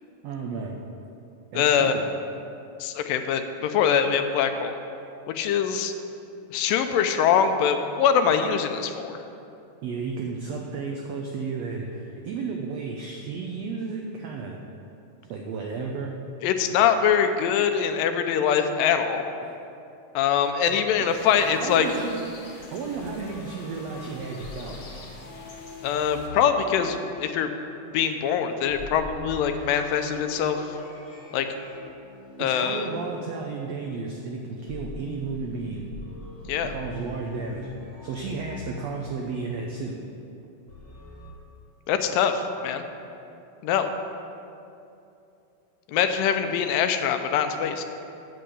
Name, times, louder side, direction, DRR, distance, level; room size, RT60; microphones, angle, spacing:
voice 1, 0.2-0.8 1.5-2.0 9.8-14.6 15.3-16.1 19.4-19.5 21.0-21.1 21.3-22.2 22.5-24.8 32.4-35.9 36.6-40.0, right 4 dB, 90° right, 1 dB, 1.4 m, -33 dB
voice 2, 1.5-2.0 2.8-4.7 5.3-5.9 6.5-9.2 16.4-19.2 20.2-21.9 25.8-27.5 27.9-30.7 31.3-31.5 32.4-32.9 36.5-36.8 41.9-42.8 43.6-43.9 45.9-47.8, left 8 dB, 85° left, 7 dB, 2.3 m, -23 dB
sound 1, 21.1-26.3, left 2 dB, 60° left, 2.6 m, -47 dB
sound 2, 22.9-27.5 28.7-33.5 34.7-39.3 40.7-41.3, left 3 dB, 45° left, 2.5 m, -43 dB
8.5 x 7.8 x 6.7 m, 2.7 s
omnidirectional pair, 3.9 m